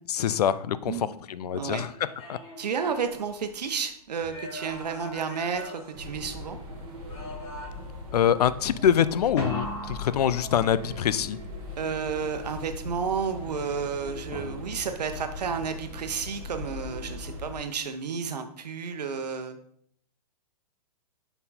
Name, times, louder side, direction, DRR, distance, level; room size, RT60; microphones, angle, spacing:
voice 1, 0.1-1.9 2.3-2.4 8.1-11.4, left 9 dB, 75° left, 16 dB, 0.4 m, -25 dB
voice 2, 1.5-1.9 2.6-6.6 11.8-19.6, right 6 dB, 85° right, 8 dB, 0.9 m, -31 dB
sound 1, 1.9-3.8 4.2-6.6 7.1-8.0 9.4-11.0 14.3-15.0, left 1 dB, 45° left, 2.3 m, -40 dB
sound 2, 5.9-17.6, left 2 dB, 20° right, 1.5 m, -40 dB
5.5 x 4.4 x 4.2 m, 0.65 s
hypercardioid pair, 165°, 20 cm